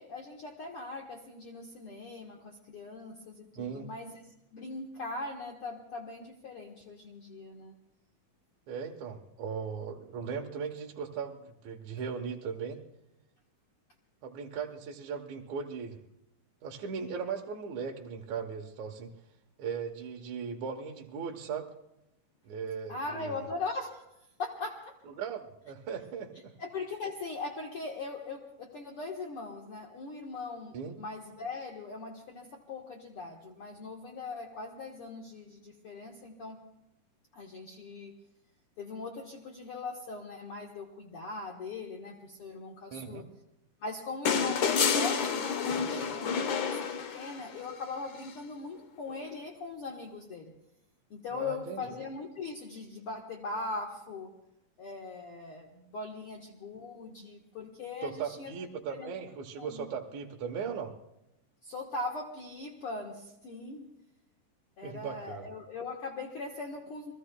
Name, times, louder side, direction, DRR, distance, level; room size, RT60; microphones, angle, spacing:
voice 1, 0.0-4.2 4.5-7.7 22.9-24.1 24.4-24.9 26.6-36.6 37.3-38.1 38.8-43.2 43.8-46.8 47.1-50.5 51.1-54.3 54.8-58.5 58.9-59.1 59.6-59.9 61.6-63.9 64.8-67.1, left 3 dB, 55° left, 1 dB, 1.8 m, -40 dB
voice 2, 3.6-3.9 8.7-12.8 14.2-16.0 16.6-19.1 19.6-21.7 22.4-23.4 25.1-26.5 30.7-31.0 42.9-43.2 51.3-51.9 58.0-60.9 64.8-65.5, right 6 dB, 65° right, 1 dB, 2.3 m, -38 dB
sound 1, 44.3-47.6 49.1-49.2, left 6 dB, 75° left, 1.1 m, -29 dB
28.5 x 21.0 x 2.3 m, 0.86 s
omnidirectional pair, 3.8 m